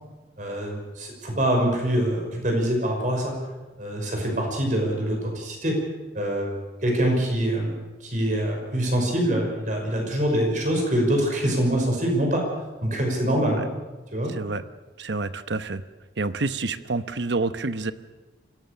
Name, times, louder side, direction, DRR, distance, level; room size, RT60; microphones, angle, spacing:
voice 1, 0.4-3.4 3.8-5.8 6.1-7.7 8.0-12.5 12.8-13.7 14.1-14.3, right 1 dB, 45° right, 1 dB, 5.8 m, -24 dB
voice 2, 14.3-14.6 15.0-15.8 16.2-17.9, right 3 dB, 75° right, 12 dB, 1.0 m, -28 dB
24.5 x 17.0 x 6.8 m, 1.2 s
head